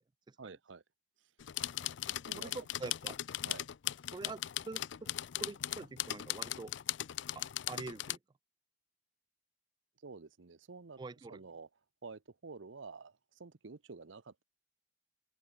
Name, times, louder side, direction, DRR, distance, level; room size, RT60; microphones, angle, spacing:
voice 1, 0.4-0.8 2.3-2.5 3.5-3.7 10.0-11.0 11.3-11.7 12.0-14.4, right 4 dB, 80° right, 0.8 m, -50 dB
sound 1, 1.4-8.2, left 13 dB, 70° left, 0.4 m, -38 dB
voice 2, 2.4-3.2 4.1-5.1 5.4-6.7 7.3-8.2 11.0-11.4, right 3 dB, 25° right, 0.3 m, -45 dB
head